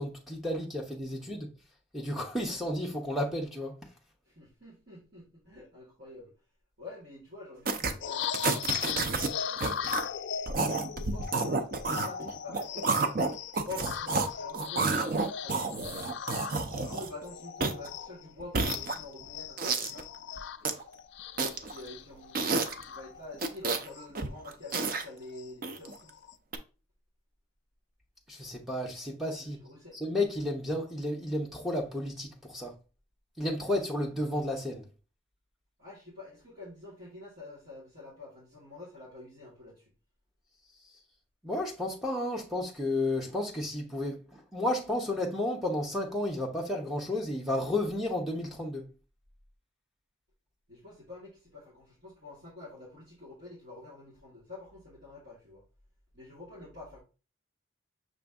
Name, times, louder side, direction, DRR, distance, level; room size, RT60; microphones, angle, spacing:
voice 1, 0.0-1.5 1.9-3.7 28.3-29.6 30.0-32.7 33.4-34.9 41.4-48.9, left 1 dB, ahead, 0.6 m, -32 dB
voice 2, 4.2-6.3 6.8-9.8 11.1-13.2 13.6-15.8 16.7-20.1 21.5-26.2 29.4-29.9 35.8-39.9 50.7-55.6 56.1-57.0, left 2 dB, 60° right, 1.5 m, -47 dB
sound 1, 7.7-7.9 8.2-9.3 9.6-10.0 10.5-14.3 14.5-17.2 17.6-17.9 18.4-19.2 19.6-20.0 20.4-20.8 21.4-21.8 22.3-22.8 23.3-23.9 24.2-25.0 25.6-25.9 26.5-26.6, right 3 dB, 45° right, 0.5 m, -30 dB
sound 2, 8.0-18.3 18.6-23.5 23.9-24.1 24.4-25.5 25.9-26.3, left 8 dB, 60° left, 0.3 m, -39 dB
6.0 x 2.6 x 3.4 m
head